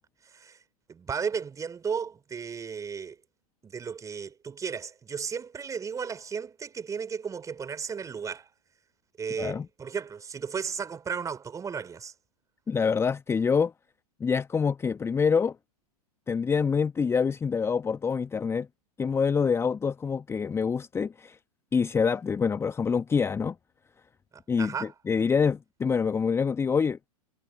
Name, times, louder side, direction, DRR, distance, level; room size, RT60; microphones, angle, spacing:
voice 1, 0.9-3.2 3.6-8.5 9.2-12.1 24.6-24.9, right 6 dB, 15° right, 3.4 m, -34 dB
voice 2, 12.7-13.7 14.2-15.5 16.3-18.7 19.0-21.4 21.7-23.5 24.5-27.1, left 6 dB, 15° left, 1.0 m, -26 dB
figure-of-eight pair, 100°, 19 cm